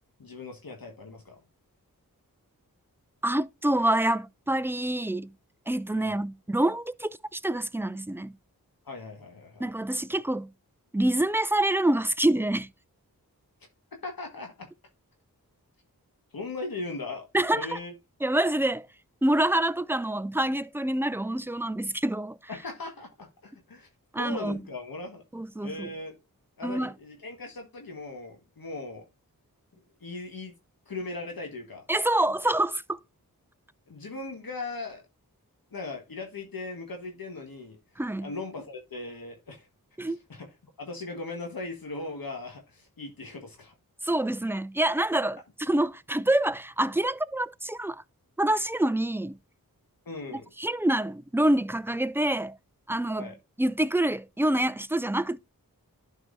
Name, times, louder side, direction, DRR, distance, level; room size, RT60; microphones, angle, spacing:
voice 1, 0.2-1.4 5.9-6.2 8.8-9.7 14.0-14.7 16.3-17.3 17.5-17.9 22.5-23.9 24.2-25.2 25.6-26.2 26.6-29.0 30.0-30.5 30.9-31.9 33.9-35.0 35.7-37.8 38.2-39.7 40.0-40.5 40.8-43.7 50.0-50.5 53.2-53.4, left 3 dB, 70° left, 1.5 m, -38 dB
voice 2, 3.2-5.3 5.7-8.3 9.6-10.5 10.9-12.7 17.3-17.8 18.2-18.9 19.2-22.4 24.1-24.6 25.3-25.9 26.6-26.9 31.9-33.0 38.0-38.3 40.0-40.2 44.0-48.0 48.4-49.4 50.3-52.6 52.9-53.3 53.6-55.4, right 1 dB, 5° right, 0.4 m, -26 dB
11.5 x 4.7 x 2.6 m
cardioid pair, 45°, 36 cm